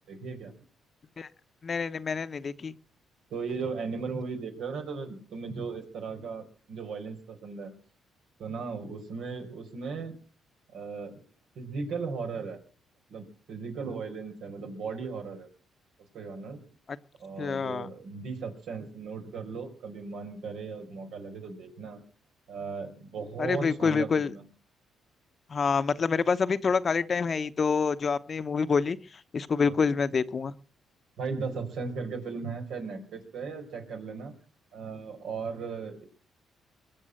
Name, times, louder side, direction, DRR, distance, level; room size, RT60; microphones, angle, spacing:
voice 1, 0.1-0.5 3.3-7.8 8.4-10.2 10.7-11.1 11.5-12.6 13.1-15.5 16.1-16.6 17.2-22.0 22.5-24.4 29.6-29.8 31.2-34.3 34.7-36.0, right 4 dB, 75° right, 4 dB, 4.6 m, -37 dB
voice 2, 1.6-2.7 17.4-17.9 23.4-24.3 25.5-29.0 29.3-30.5, left 5 dB, 40° left, 12 dB, 0.9 m, -27 dB
22.5 x 7.6 x 7.8 m, 0.42 s
cardioid pair, 90°, 0 cm